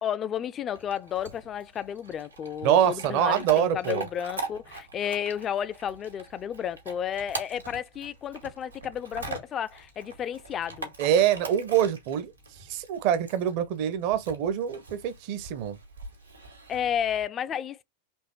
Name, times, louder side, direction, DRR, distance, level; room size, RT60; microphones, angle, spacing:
voice 1, 0.0-10.9 16.7-17.8, left 9 dB, 25° left, 0.4 m, -32 dB
Chewing mastication / Dog, 0.7-17.2, right 3 dB, 80° right, 1.8 m, -43 dB
voice 2, 2.6-4.0 11.0-12.3 12.7-15.8, right 10 dB, 45° right, 0.8 m, -25 dB
4.5 x 3.2 x 3.0 m
figure-of-eight pair, 90°, 0 cm